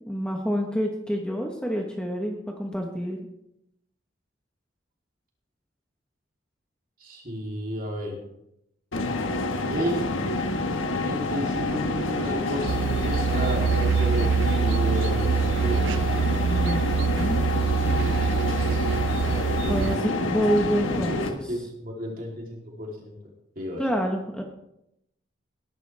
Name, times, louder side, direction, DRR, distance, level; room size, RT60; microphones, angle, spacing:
voice 1, 0.1-3.2 16.4-17.4 19.7-21.4 23.8-24.4, equal, 5° left, 1 dB, 1.1 m, -27 dB
voice 2, 7.0-8.2 9.7-10.1 11.0-15.9 19.3-23.2 23.5-23.8, equal, 45° right, -1 dB, 3.2 m, -33 dB
sound 1, 8.9-21.3, left 2 dB, 80° left, 1.4 m, -28 dB
sound 2, 12.7-20.0, right 6 dB, 70° right, 0.3 m, -25 dB
18.5 x 11.0 x 3.4 m, 0.80 s
head